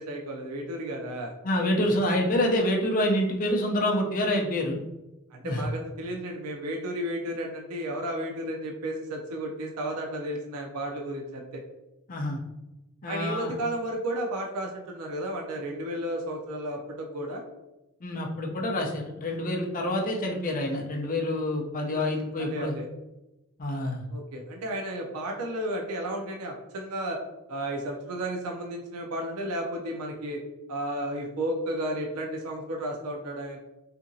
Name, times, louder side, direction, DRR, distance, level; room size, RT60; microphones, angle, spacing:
voice 1, 0.0-1.3 5.3-11.6 13.1-17.4 21.8-22.9 24.1-27.2 27.5-30.4 30.7-33.6, right 1 dB, 80° right, 1 dB, 0.5 m, -33 dB
voice 2, 1.4-4.8 5.4-5.6 12.1-12.4 13.0-13.5 18.0-22.8 23.6-24.1, left 1 dB, 40° left, 0 dB, 0.5 m, -27 dB
2.8 x 2.5 x 2.6 m, 0.98 s
head